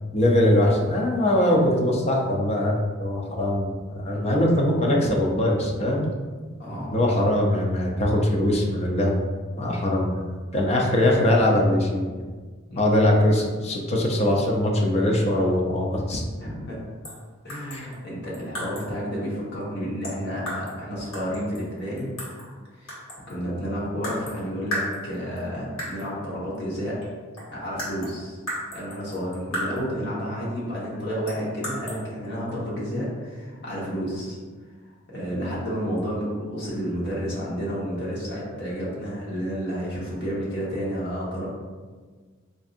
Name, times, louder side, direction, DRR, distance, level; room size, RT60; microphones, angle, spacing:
voice 1, 0.1-6.1 6.9-9.2 9.6-10.2 10.5-12.1 12.8-16.2 17.7-17.9, left 1 dB, 30° left, 0 dB, 0.5 m, -22 dB
voice 2, 6.6-6.9 12.7-13.0 16.4-16.8 17.4-22.1 22.8-23.0 23.3-27.0 27.5-28.4 28.7-34.4 35.1-41.5, equal, 55° left, -6 dB, 1.3 m, -31 dB
sound 1, 17.0-17.2 17.5-19.0 20.0-20.8 21.1-22.5 22.9-23.4 24.0-24.4 24.7-25.4 25.8-26.1 27.0-27.1 27.4-30.0 31.3-32.0, equal, 85° left, 1.4 m, -34 dB
4.4 x 2.7 x 2.5 m, 1.5 s
head